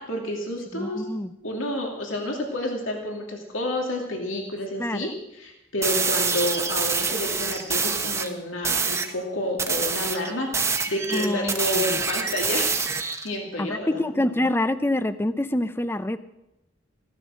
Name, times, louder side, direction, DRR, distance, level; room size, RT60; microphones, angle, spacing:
voice 1, 0.0-1.1 1.4-10.5 10.9-12.7 13.2-14.0, left 1 dB, 90° left, 1 dB, 2.5 m, -29 dB
voice 2, 0.7-1.3 4.8-5.1 11.1-12.0 13.6-16.2, left 1 dB, 10° left, 12 dB, 0.5 m, -26 dB
sound 1, 5.8-8.3 8.6-9.1 9.6-13.3, right 5 dB, 15° right, 1.0 m, -26 dB
15.5 x 12.0 x 6.3 m, 0.91 s
head